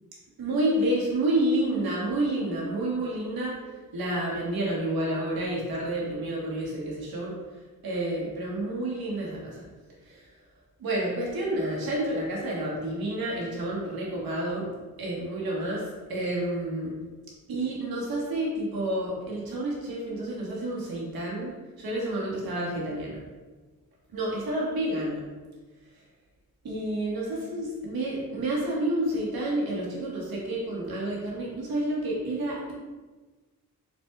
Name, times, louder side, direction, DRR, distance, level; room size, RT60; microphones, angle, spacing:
voice 1, 0.4-3.6 3.9-7.3 7.8-9.6 10.1-10.2 10.8-14.7 15.0-15.8 16.1-16.9 17.5-23.2 24.1-25.2 26.6-32.7, right 1 dB, 80° right, -4 dB, 1.4 m, -29 dB
4.3 x 4.1 x 2.3 m, 1.3 s
cardioid pair, 70°, 36 cm